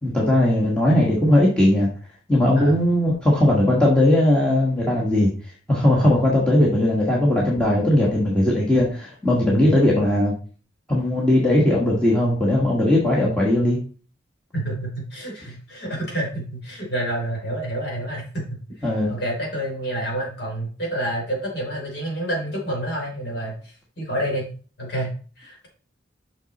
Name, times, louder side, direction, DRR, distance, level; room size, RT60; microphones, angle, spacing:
voice 1, 0.0-1.9 2.3-5.3 5.7-10.3 10.9-13.8 18.8-19.1, left 1 dB, 5° left, -5 dB, 1.3 m, -18 dB
voice 2, 14.5-24.5 24.8-25.7, right 1 dB, 60° left, -2 dB, 3.3 m, -29 dB
5.9 x 5.8 x 4.0 m, 0.40 s
head